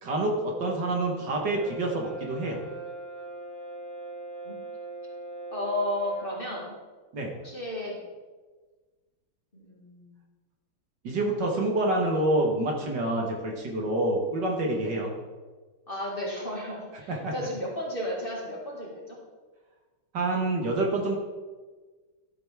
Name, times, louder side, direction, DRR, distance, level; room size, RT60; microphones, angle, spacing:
voice 1, 0.0-2.6 7.1-7.3 11.0-15.1 17.1-17.3 20.1-21.2, right 2 dB, 60° right, 0 dB, 1.9 m, -27 dB
Brass instrument, 1.5-6.4, right 2 dB, 85° right, 3.3 m, -40 dB
voice 2, 5.5-6.7 7.4-8.0 9.5-10.1 14.8-15.0 15.9-19.2, left 1 dB, 25° left, -4 dB, 2.1 m, -33 dB
13.0 x 7.6 x 3.5 m, 1.3 s
omnidirectional pair, 2.2 m